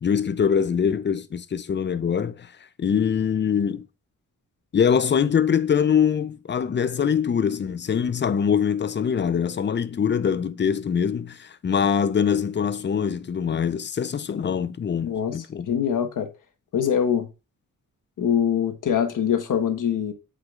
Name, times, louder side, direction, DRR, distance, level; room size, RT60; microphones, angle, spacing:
voice 1, 0.0-2.5 2.8-3.9 4.7-15.7, left 7 dB, 35° left, 0.6 m, -23 dB
voice 2, 15.0-16.3 16.7-17.3 18.2-20.1, left 8 dB, 65° left, 1.3 m, -23 dB
8.0 x 5.1 x 2.4 m
cardioid pair, 65°, 34 cm